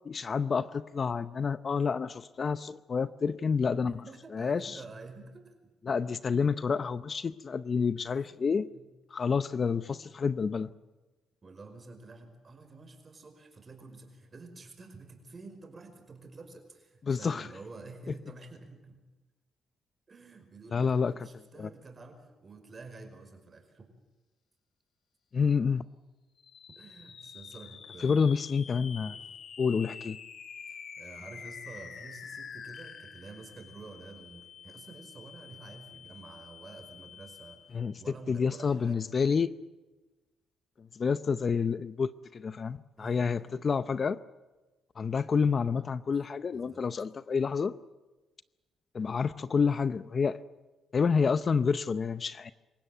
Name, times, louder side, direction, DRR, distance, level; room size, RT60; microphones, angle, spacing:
voice 1, 0.0-4.0 4.3-4.8 5.8-8.7 9.1-10.7 17.1-17.5 20.7-21.1 21.6-21.7 25.3-25.9 28.0-29.2 29.6-30.2 37.7-38.0 38.3-39.6 40.8-44.2 45.0-47.8 48.9-50.4 50.9-52.5, left 5 dB, 40° left, 15 dB, 0.7 m, -29 dB
voice 2, 3.8-5.7 8.2-8.8 9.2-9.3 11.4-19.0 20.1-23.9 26.8-28.4 29.0-29.3 30.7-39.1 43.0-43.6 46.5-46.8, right 3 dB, 35° right, 6 dB, 5.2 m, -49 dB
sound 1, 26.4-37.9, left 7 dB, 55° left, 1.9 m, -47 dB
26.5 x 16.0 x 9.1 m, 1.2 s
cardioid pair, 90°, 0 cm